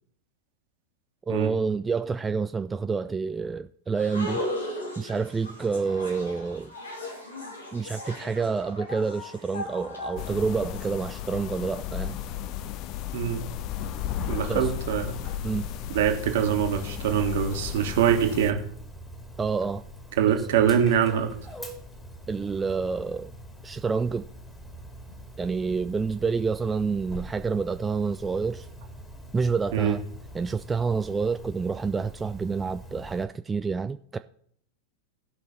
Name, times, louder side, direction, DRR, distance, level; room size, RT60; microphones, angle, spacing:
voice 1, 1.3-4.4 5.0-6.7 7.7-12.2 14.5-14.7 15.4-15.7 19.4-19.8 22.3-23.3 23.6-24.3 25.4-28.7 29.3-30.0 30.3-34.2, right 5 dB, 15° right, 0.3 m, -28 dB
sound 1, 3.9-10.9, left 1 dB, 75° left, 2.5 m, -37 dB
sound 2, 10.2-18.5, left 11 dB, 40° left, 0.6 m, -34 dB
Dog, 13.8-33.2, equal, 15° left, 2.4 m, -44 dB
voice 2, 14.3-15.1 15.9-18.6 20.2-21.3 29.7-30.0, right 9 dB, 55° right, 1.7 m, -24 dB
16.5 x 5.7 x 4.1 m
figure-of-eight pair, 90°, 0 cm